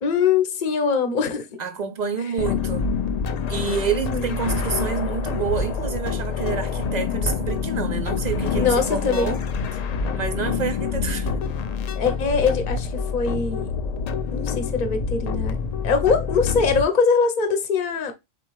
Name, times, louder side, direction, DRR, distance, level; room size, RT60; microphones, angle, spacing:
voice 1, 0.0-1.6 3.9-4.4 8.5-9.3 11.9-13.7 14.3-15.6 15.8-18.1, left 5 dB, 45° left, 0.8 m, -22 dB
voice 2, 1.6-2.9 3.5-9.4 10.1-11.3, right 6 dB, 65° right, 0.4 m, -28 dB
sound 1, 2.4-16.8, left 5 dB, 75° left, 0.3 m, -26 dB
4.5 x 3.7 x 3.0 m
omnidirectional pair, 1.2 m